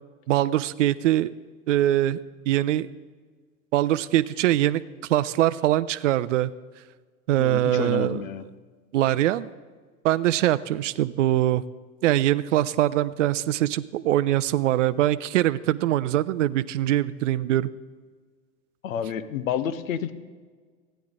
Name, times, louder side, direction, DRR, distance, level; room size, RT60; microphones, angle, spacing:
voice 1, 0.3-1.3 1.7-2.2 2.5-2.9 3.7-4.8 5.1-6.5 7.3-8.2 8.9-9.5 10.0-11.6 12.0-17.7, right 13 dB, 60° right, 16 dB, 0.5 m, -22 dB
voice 2, 7.4-8.4 18.8-20.1, left 8 dB, 65° left, 12 dB, 0.9 m, -29 dB
15.5 x 10.0 x 3.6 m, 1.5 s
figure-of-eight pair, 85°, 43 cm